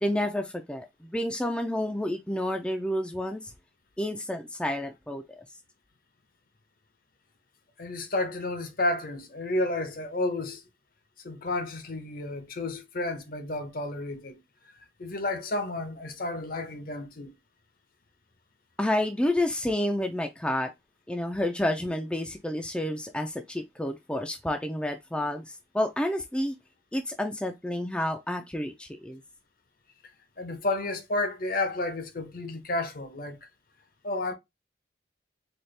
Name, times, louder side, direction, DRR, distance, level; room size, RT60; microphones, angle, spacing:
voice 1, 0.0-3.5 4.0-5.2 18.8-20.7 21.1-26.6 26.9-29.2, left 1 dB, 5° left, 0.3 m, -30 dB
voice 2, 7.8-10.6 11.2-14.4 15.0-17.3 30.4-33.4 34.0-34.3, left 2 dB, 50° left, 0.7 m, -31 dB
4.2 x 2.3 x 3.2 m
head